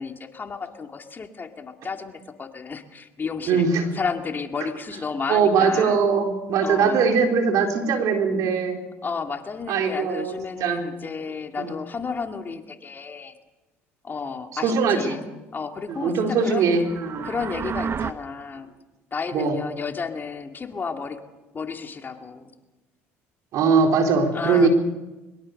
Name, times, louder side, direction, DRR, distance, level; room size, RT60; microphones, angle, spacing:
voice 1, 0.0-3.7 3.9-6.0 6.6-7.0 9.0-13.3 14.0-15.2 15.5-16.6 17.2-18.7 19.1-21.2 21.5-22.5 24.3-24.7, left 5 dB, 30° left, 5 dB, 2.5 m, -32 dB
voice 2, 3.5-3.9 5.3-8.8 9.7-10.3 10.6-10.8 11.6-11.7 14.5-15.2 15.9-17.3 19.3-19.5 23.5-24.7, right 5 dB, 65° right, 3 dB, 4.2 m, -21 dB
sound 1, 16.7-18.1, right 6 dB, 40° right, 1.1 m, -30 dB
23.0 x 22.5 x 6.7 m, 1.1 s
hypercardioid pair, 75°, 6 cm